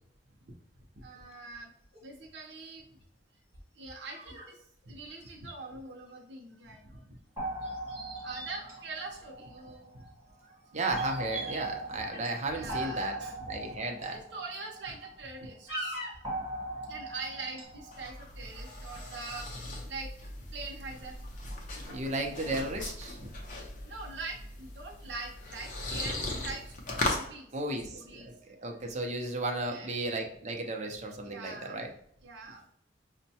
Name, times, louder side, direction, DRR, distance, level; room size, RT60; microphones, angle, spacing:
voice 1, 1.0-1.7 2.0-2.8 3.8-4.6 4.9-7.1 8.2-9.9 12.5-13.4 14.1-16.0 16.5-19.5 19.9-20.1 20.5-21.1 21.8-22.4 23.9-29.0 29.6-30.0 31.2-31.8 32.2-32.6, right 3 dB, 85° right, 0 dB, 0.6 m, -43 dB
sound 1, 1.2-1.3 1.8-2.0 2.6-2.7 3.5-4.5 4.8-4.9 5.1-5.5 7.6-9.7 10.4-10.6 10.8-11.6 11.9-12.8 13.4-13.6 14.1-14.2 14.8-15.3 15.7-16.3, right 1 dB, 60° left, 1.4 m, -43 dB
sound 2, 7.4-10.1 10.9-15.5 16.2-18.0, right 1 dB, 15° right, 1.0 m, -40 dB
voice 2, 10.7-13.2 13.5-14.2 21.8-23.3 25.9-26.0 27.5-31.9, right 2 dB, 40° right, 3 dB, 0.6 m, -34 dB
sound 3, 17.6-27.3, left 2 dB, 45° left, 0.7 m, -38 dB
5.3 x 2.1 x 2.7 m, 0.67 s
head